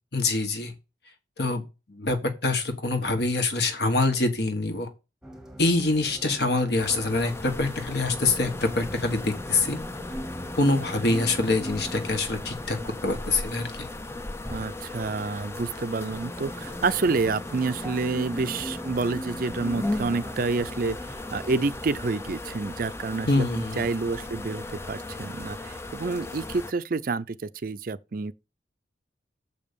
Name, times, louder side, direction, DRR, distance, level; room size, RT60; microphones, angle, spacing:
voice 1, 0.1-0.7 1.4-1.6 1.9-4.9 5.6-9.8 10.6-12.8 13.0-13.9 23.3-23.8, left 2 dB, 65° left, 1.6 m, -25 dB
sound 1, 5.2-22.1, equal, 5° right, 1.0 m, -41 dB
sound 2, 6.8-26.7, left 2 dB, 15° left, 0.5 m, -37 dB
voice 2, 14.5-28.3, right 3 dB, 50° right, 0.5 m, -29 dB
6.9 x 5.3 x 6.9 m
head